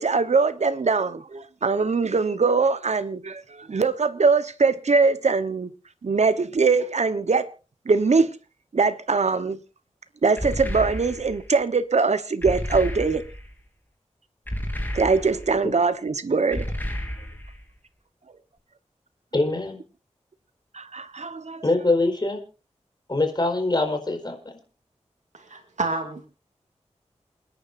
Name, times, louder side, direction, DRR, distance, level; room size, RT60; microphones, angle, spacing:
voice 1, 0.0-5.7 6.0-7.5 7.8-8.4 8.7-9.6 10.2-13.2 14.9-16.7 20.7-21.6, right 4 dB, 70° right, 1.2 m, -22 dB
sound 1, 10.4-11.5 12.4-13.5 14.5-15.6 16.5-17.6, equal, 15° left, 3.9 m, -31 dB
voice 2, 19.3-19.8 21.6-22.4 23.1-24.4, left 2 dB, 35° left, 4.6 m, -23 dB
voice 3, 25.3-26.3, right 3 dB, 85° right, 2.5 m, -29 dB
29.0 x 10.0 x 2.7 m
wide cardioid pair, 65°, 12 cm